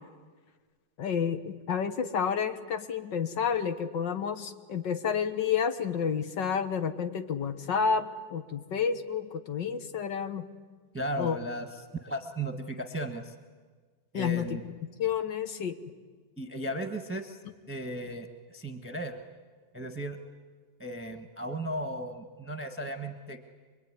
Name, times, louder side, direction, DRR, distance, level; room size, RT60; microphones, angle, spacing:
voice 1, 1.0-10.5 11.2-11.4 14.1-14.5 15.0-15.8, left 7 dB, 80° left, 8 dB, 2.1 m, -30 dB
voice 2, 10.9-13.3 14.1-14.6 16.4-17.4 17.7-19.2 19.7-20.2 20.8-23.4, right 1 dB, 10° right, 5 dB, 1.2 m, -36 dB
25.5 x 22.0 x 9.7 m, 1.5 s
omnidirectional pair, 1.9 m